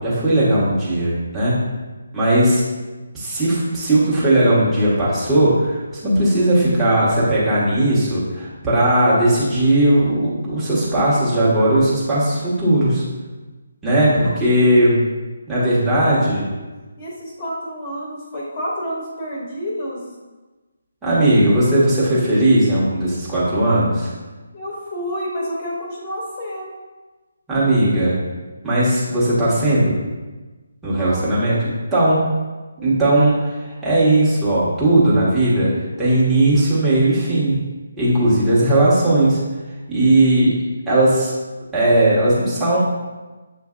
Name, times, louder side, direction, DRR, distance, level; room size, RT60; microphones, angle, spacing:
voice 1, 0.0-1.6 2.1-2.6 3.1-13.0 13.8-15.0 15.5-16.5 21.0-24.1 27.5-28.2 28.6-30.0 30.8-31.6 31.9-32.2 32.8-35.7 36.0-37.6 38.0-39.4 39.9-40.5 40.9-41.3 41.7-42.8, right 1 dB, 5° right, -10 dB, 1.2 m, -17 dB
voice 2, 15.9-16.4 17.0-20.1 24.5-26.8 30.8-31.3 32.8-32.9, equal, 30° left, -4 dB, 0.9 m, -29 dB
7.7 x 2.6 x 2.5 m, 1.2 s
figure-of-eight pair, 145°, 0 cm